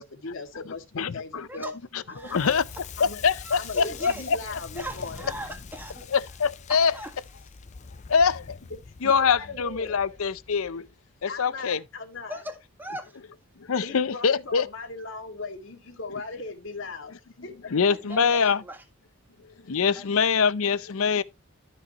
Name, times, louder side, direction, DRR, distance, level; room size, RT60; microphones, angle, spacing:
voice 1, 0.0-1.7 2.1-2.5 3.0-3.2 3.5-5.3 9.0-10.0 11.3-12.4 13.8-17.1 17.4-17.5, left 3 dB, 60° left, 2.1 m, -38 dB
voice 2, 0.9-1.5 2.3-2.6 3.2-4.4 6.1-6.9 8.1-8.4 9.0-10.9 11.2-11.8 13.6-14.7 17.7-18.6 19.7-21.2, left 6 dB, 75° left, 0.6 m, -24 dB
voice 3, 2.1-2.8 3.5-4.4 4.7-6.1 6.7-7.1 7.4-7.5 11.6-11.8 12.3-13.2 17.9-18.8 19.9-20.2, right 1 dB, 10° right, 1.6 m, -40 dB
Crackle, 2.2-11.1, left 5 dB, 30° left, 0.4 m, -44 dB
13.0 x 6.3 x 2.9 m
head